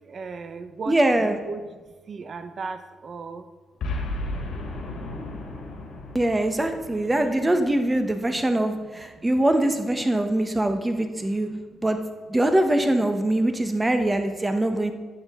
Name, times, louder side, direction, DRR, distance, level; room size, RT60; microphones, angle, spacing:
voice 1, 0.0-3.5 8.2-9.3 10.4-10.7 11.0-11.9 12.3-12.4 13.6-13.9 14.7-14.9, right 4 dB, 55° right, 9 dB, 0.8 m, -39 dB
voice 2, 0.9-1.4 6.1-11.5 11.8-12.0 12.3-14.9, right 1 dB, 20° right, 6 dB, 1.1 m, -23 dB
Boom, 3.8-8.2, left 2 dB, 75° left, 2.0 m, -34 dB
11.0 x 8.1 x 3.7 m, 1.3 s
cardioid pair, 70°, 0 cm